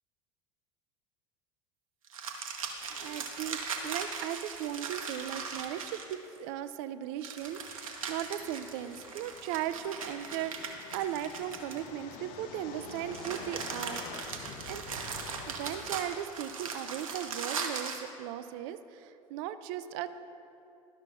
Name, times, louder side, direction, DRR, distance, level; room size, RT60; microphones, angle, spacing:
sound 1, 2.1-6.4 7.2-12.1 12.8-18.1, right 5 dB, 85° right, 0.9 m, -39 dB
voice 1, 2.9-14.0 14.7-14.8 15.5-20.1, right 11 dB, 60° right, 12 dB, 0.5 m, -37 dB
sound 2, 7.4-16.0, left 5 dB, 55° left, 0.8 m, -48 dB
12.0 x 5.6 x 3.6 m, 2.8 s
hypercardioid pair, 75°, 17 cm